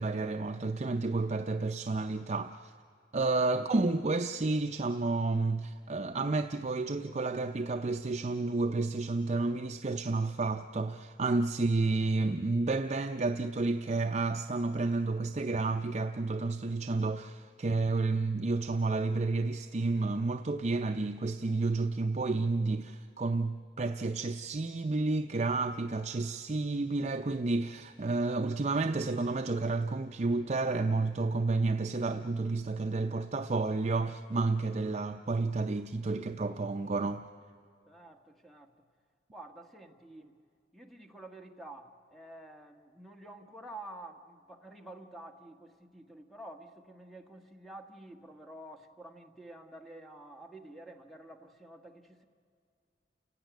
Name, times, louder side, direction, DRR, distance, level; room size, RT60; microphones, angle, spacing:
voice 1, 0.0-2.7 3.1-37.2, right 3 dB, 40° right, 0.5 m, -31 dB
voice 2, 37.9-38.7 39.3-40.4 40.7-52.2, right 1 dB, ahead, 1.4 m, -49 dB
29.0 x 16.5 x 9.3 m
head